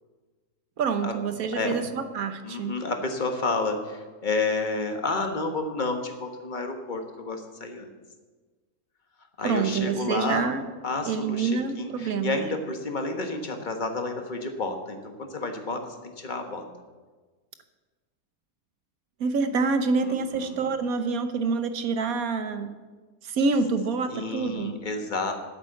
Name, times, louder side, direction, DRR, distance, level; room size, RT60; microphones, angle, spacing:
voice 1, 0.8-2.7 9.4-10.6 11.1-12.4 19.2-22.7 23.2-24.7, right 4 dB, 75° right, 9 dB, 1.4 m, -27 dB
voice 2, 2.4-7.9 9.4-10.5 10.8-16.6 20.0-20.6 24.1-25.3, left 3 dB, 35° left, 5 dB, 1.4 m, -30 dB
10.5 x 8.7 x 7.8 m, 1.3 s
omnidirectional pair, 1.5 m